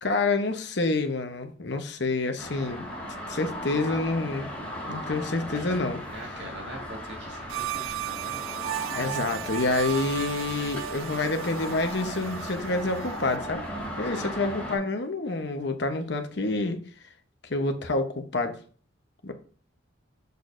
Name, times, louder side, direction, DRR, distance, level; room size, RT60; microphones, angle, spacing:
voice 1, 0.0-2.8 3.3-4.5 4.9-6.0 8.9-13.6 14.0-16.8 17.5-18.6 19.2-19.3, left 3 dB, 60° left, 6 dB, 1.0 m, -28 dB
sound 1, 2.4-14.8, equal, 10° left, 2.8 m, -37 dB
voice 2, 6.1-8.4 14.0-14.4, right 1 dB, 60° right, 1 dB, 1.8 m, -43 dB
sound 2, 7.5-13.4, right 12 dB, 85° right, 0.3 m, -35 dB
6.8 x 6.4 x 2.6 m, 0.42 s
head